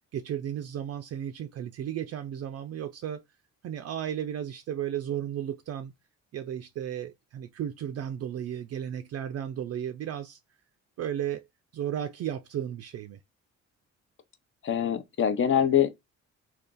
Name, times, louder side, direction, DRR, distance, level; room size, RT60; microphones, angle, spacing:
voice 1, 0.1-3.2 3.6-5.9 6.3-10.4 11.0-11.5 11.7-13.2, right 10 dB, 55° right, 0.4 m, -34 dB
voice 2, 14.6-15.9, left 9 dB, 40° left, 0.7 m, -24 dB
2.5 x 2.4 x 3.7 m
cardioid pair, 90°, 30 cm